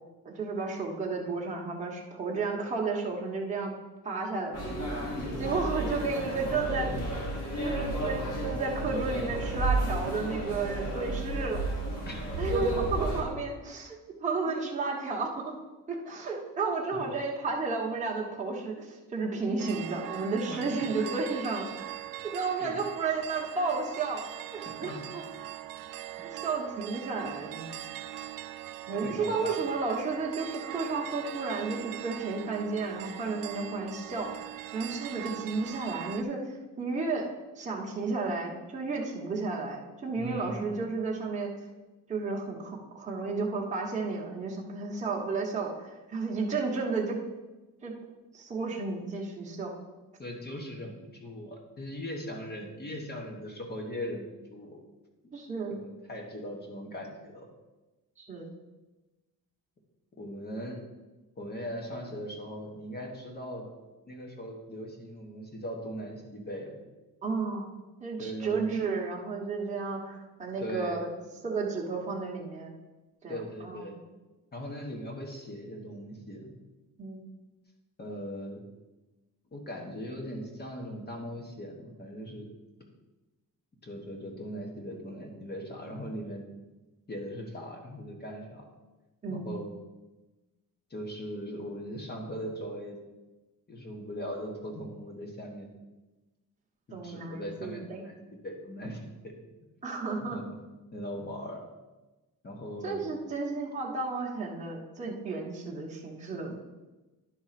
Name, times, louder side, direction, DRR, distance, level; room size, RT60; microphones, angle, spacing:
voice 1, 0.2-3.7 4.0-4.7 5.4-6.9 7.6-11.7 12.4-15.5 15.9-21.7 22.2-24.2 24.5-25.2 26.3-27.8 28.9-37.3 37.5-41.5 42.1-47.2 47.8-47.9 48.3-49.8 55.3-55.8 58.2-58.5 67.2-67.7 68.0-71.1 71.4-72.7 73.2-73.9 77.0-77.2 89.2-89.5 96.9-98.0 99.8-100.4 102.8-106.6, right 4 dB, 20° right, -3 dB, 1.2 m, -32 dB
sound 1, 4.5-13.2, right 2 dB, 45° left, 2.0 m, -32 dB
voice 2, 5.2-5.5 12.1-12.7 14.4-14.6 16.9-17.1 20.5-20.9 22.6-22.7 24.8-25.0 29.0-29.6 40.2-40.7 50.2-54.8 55.2-55.3 55.7-57.5 60.2-60.8 61.4-63.7 64.1-66.7 68.2-68.7 70.6-71.0 73.3-74.0 74.5-76.5 78.0-78.6 79.5-82.5 83.8-86.4 87.1-88.7 89.3-89.7 90.9-93.0 93.7-95.7 96.9-98.2 98.4-99.3 100.3-100.5 100.9-101.6 102.4-103.0, equal, 25° left, 1 dB, 1.3 m, -39 dB
sound 2, 19.6-36.2, right 13 dB, 60° right, 0.5 m, -41 dB
10.5 x 4.0 x 5.8 m, 1.1 s
cardioid pair, 175°, 37 cm